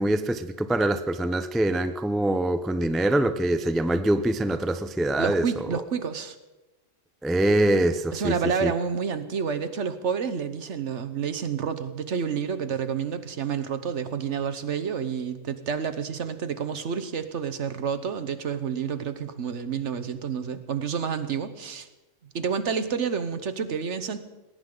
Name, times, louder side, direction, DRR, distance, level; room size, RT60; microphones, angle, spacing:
voice 1, 0.0-5.8 7.2-8.3 8.6-8.7, right 1 dB, ahead, 0.3 m, -24 dB
voice 2, 5.2-6.4 8.1-21.9 22.3-24.2, right 6 dB, 65° right, 1.3 m, -29 dB
19.5 x 18.0 x 3.9 m
omnidirectional pair, 1.3 m